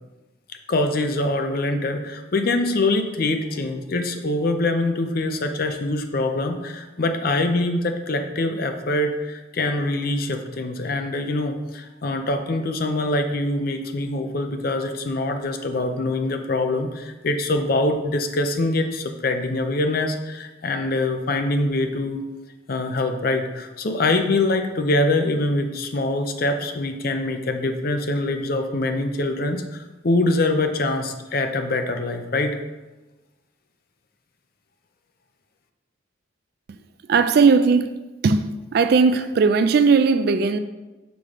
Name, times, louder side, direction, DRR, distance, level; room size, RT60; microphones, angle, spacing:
voice 1, 0.7-22.2 22.7-32.6, left 2 dB, 50° left, 0.5 m, -24 dB
voice 2, 37.1-37.9 38.2-38.4 38.7-40.6, right 5 dB, 50° right, 0.3 m, -17 dB
6.1 x 3.7 x 4.9 m
head